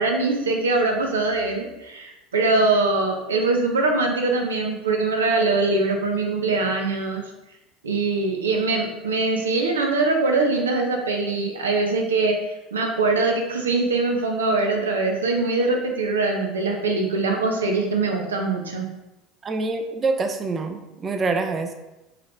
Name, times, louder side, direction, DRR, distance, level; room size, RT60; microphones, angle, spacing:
voice 1, 0.0-7.2 7.8-18.9, right 3 dB, 80° right, 2 dB, 0.6 m, -22 dB
voice 2, 19.4-21.7, right 3 dB, 30° right, 6 dB, 0.5 m, -25 dB
5.7 x 3.1 x 2.4 m, 0.98 s
figure-of-eight pair, 70°, 0 cm